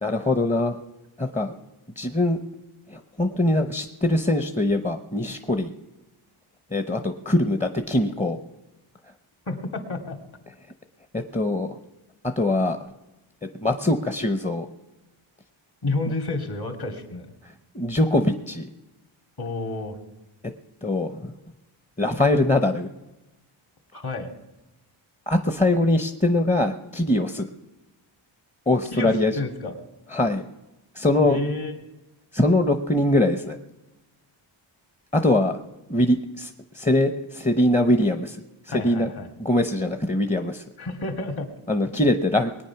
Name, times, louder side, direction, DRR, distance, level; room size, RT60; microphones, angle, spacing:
voice 1, 0.0-0.8 1.2-1.5 2.0-2.4 2.9-5.7 6.7-8.4 11.1-11.8 12.4-12.8 13.6-14.7 17.7-18.7 20.8-21.3 22.0-22.9 25.3-27.5 28.7-29.3 30.1-30.4 30.9-31.4 32.3-33.6 35.1-35.6 35.9-38.4 38.7-39.1 39.4-40.6 41.7-42.5, left 1 dB, 15° left, 7 dB, 0.8 m, -22 dB
voice 2, 9.5-10.2 15.8-17.3 19.4-20.0 23.9-24.3 28.9-29.8 31.2-31.7 38.7-39.3 40.8-41.5, left 2 dB, 50° left, 6 dB, 2.4 m, -30 dB
21.0 x 9.1 x 5.9 m, 1.0 s
cardioid pair, 80°, 48 cm